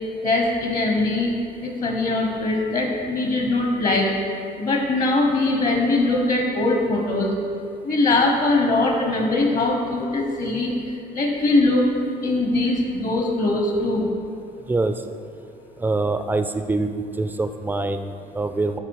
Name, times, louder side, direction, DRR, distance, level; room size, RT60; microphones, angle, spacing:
voice 1, 0.2-1.3 1.6-4.1 4.6-7.3 7.8-10.7 11.1-11.9 12.2-14.1, left 2 dB, 45° left, 2 dB, 1.0 m, -21 dB
voice 2, 15.8-16.9 17.2-18.8, right 3 dB, 10° right, 8 dB, 0.4 m, -24 dB
9.9 x 3.5 x 4.7 m, 2.5 s
cardioid pair, 110°, 17 cm